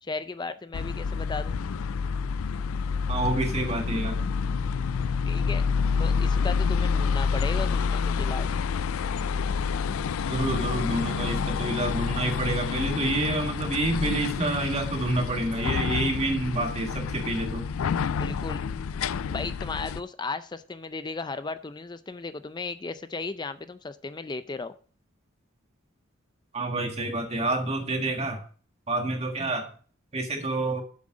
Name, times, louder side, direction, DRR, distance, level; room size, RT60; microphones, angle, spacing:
voice 1, 0.0-1.6 5.2-5.7 6.0-8.5 18.2-18.6 19.3-24.7, left 3 dB, 20° left, 11 dB, 0.5 m, -35 dB
sound 1, 0.7-20.0, left 5 dB, 75° left, 0.4 m, -28 dB
voice 2, 3.1-4.3 10.3-17.6 26.5-28.4 28.9-29.7 30.1-30.8, right 2 dB, 30° right, 3 dB, 1.7 m, -28 dB
7.6 x 7.6 x 5.0 m, 0.41 s
head